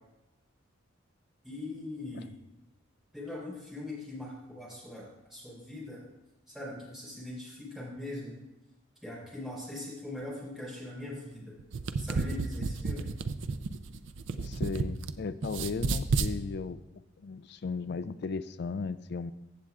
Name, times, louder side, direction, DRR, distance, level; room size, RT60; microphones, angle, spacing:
voice 1, 1.4-2.3 3.1-6.0 6.5-8.4 9.0-11.6 12.0-13.1, left 2 dB, ahead, -7 dB, 3.8 m, -41 dB
sound 1, 11.6-15.1 15.4-16.3, right 4 dB, 60° right, 0.5 m, -31 dB
voice 2, 14.4-16.8 17.2-19.3, left 4 dB, 55° left, 13 dB, 0.3 m, -36 dB
15.0 x 7.7 x 2.4 m, 1.0 s
head